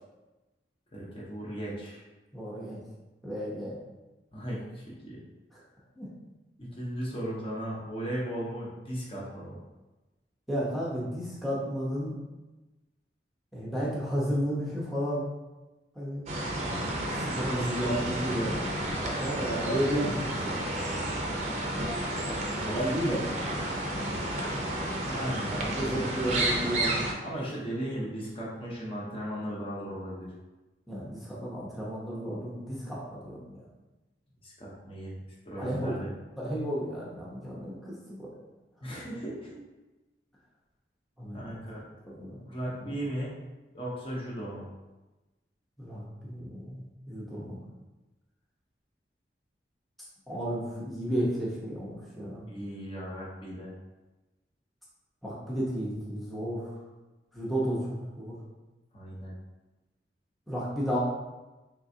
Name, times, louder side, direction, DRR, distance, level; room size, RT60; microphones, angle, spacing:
voice 1, 0.9-2.0 4.3-5.2 6.6-9.6 25.1-26.1 27.2-30.3 34.4-35.2 35.4-36.1 38.8-39.6 41.3-41.9 42.5-43.4 43.7-44.7 52.5-53.7 58.9-59.3, right 1 dB, 30° left, -5 dB, 0.8 m, -36 dB
voice 2, 2.3-2.8 3.2-3.8 5.5-5.6 6.0-6.1 10.5-12.2 13.5-15.3 15.9-16.3 17.2-20.6 22.4-23.7 25.4-25.5 25.8-27.0 30.9-33.6 35.6-36.0 36.4-38.3 41.2-41.6 42.0-42.4 42.7-42.8 45.8-47.6 50.3-52.5 55.2-56.7 57.3-58.4 60.5-61.0, equal, ahead, -8 dB, 0.7 m, -33 dB
sound 1, 16.3-27.1, right 1 dB, 40° right, 0.6 m, -31 dB
3.7 x 3.3 x 2.7 m, 1.1 s
head